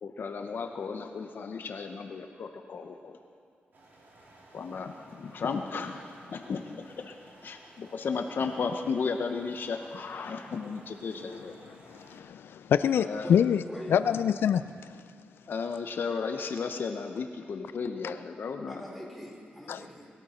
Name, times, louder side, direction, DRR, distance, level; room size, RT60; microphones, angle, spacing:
voice 1, 0.0-3.2 4.5-11.5 13.0-13.3 15.5-18.8, left 5 dB, 65° left, 5 dB, 0.8 m, -34 dB
sound 1, 3.7-12.2, right 1 dB, 65° right, 2.9 m, -56 dB
voice 2, 11.9-13.6 13.9-15.0 18.0-18.1 19.7-19.8, left 8 dB, 90° left, 12 dB, 0.3 m, -26 dB
voice 3, 13.7-14.2 18.7-20.1, equal, ahead, -2 dB, 3.6 m, -43 dB
20.0 x 13.0 x 4.4 m, 2.2 s
wide cardioid pair, 100°, 4 cm